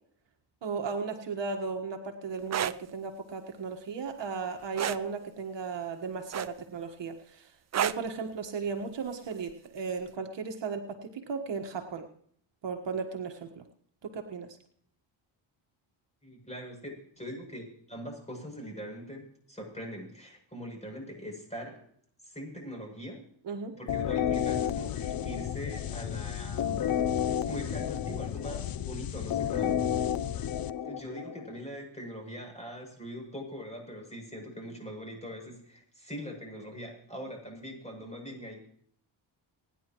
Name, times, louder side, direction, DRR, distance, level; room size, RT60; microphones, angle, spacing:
voice 1, 0.6-12.1 12.6-13.6 14.0-14.6 23.4-23.8, right 5 dB, 60° right, 4 dB, 1.6 m, -36 dB
sound 1, 2.4-2.8 4.8-5.0 6.3-6.8 7.7-8.1 9.5-9.7, right 9 dB, 35° right, 0.5 m, -30 dB
voice 2, 16.2-21.8 22.2-23.2 23.7-26.9 27.4-29.8 30.8-38.6, equal, 15° left, 1 dB, 7.7 m, -42 dB
sound 2, 23.9-31.5, left 9 dB, 45° left, 0.7 m, -31 dB
28.0 x 10.5 x 3.1 m, 0.63 s
cardioid pair, 85°, 49 cm